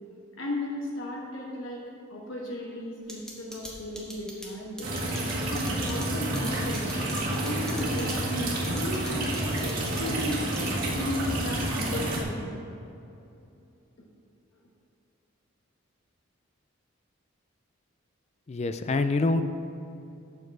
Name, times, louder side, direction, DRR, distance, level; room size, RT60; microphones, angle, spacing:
voice 1, 0.4-1.8 2.1-4.9 5.5-6.8 7.3-8.3 8.7-12.5, left 1 dB, 75° left, -3 dB, 1.3 m, -35 dB
sound 1, 3.1-11.0, equal, 5° left, 1.3 m, -42 dB
sound 2, 4.8-12.2, right 1 dB, 45° right, 1.8 m, -29 dB
voice 2, 18.5-19.4, left 3 dB, 30° left, 9 dB, 0.4 m, -25 dB
8.7 x 6.8 x 4.7 m, 2.7 s
head